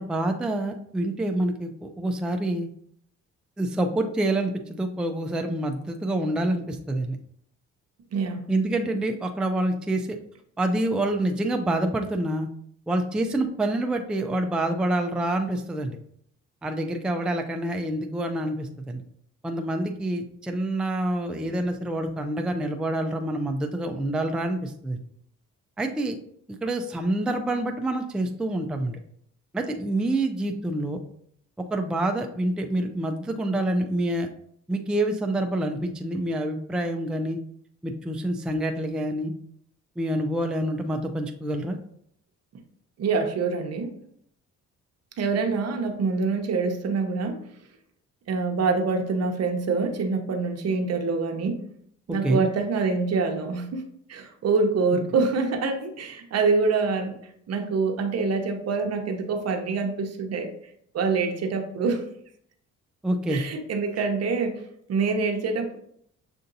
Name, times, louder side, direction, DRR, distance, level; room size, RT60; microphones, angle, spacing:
voice 1, 0.0-2.7 3.6-7.2 8.5-10.2 10.6-12.5 12.9-16.0 16.6-19.0 19.4-25.0 25.8-26.1 26.6-29.0 29.5-31.0 31.7-34.3 34.7-37.4 37.8-39.3 40.0-41.8 52.1-52.4 63.0-63.4, right 1 dB, 5° right, 4 dB, 0.4 m, -27 dB
voice 2, 8.1-8.4 43.0-43.9 45.2-47.4 48.3-51.6 52.1-53.8 54.1-57.2 57.5-60.5 60.9-62.0 63.3-64.6 64.9-65.8, right 4 dB, 55° right, 5 dB, 0.8 m, -25 dB
6.7 x 2.6 x 2.6 m, 0.67 s
cardioid pair, 90°, 30 cm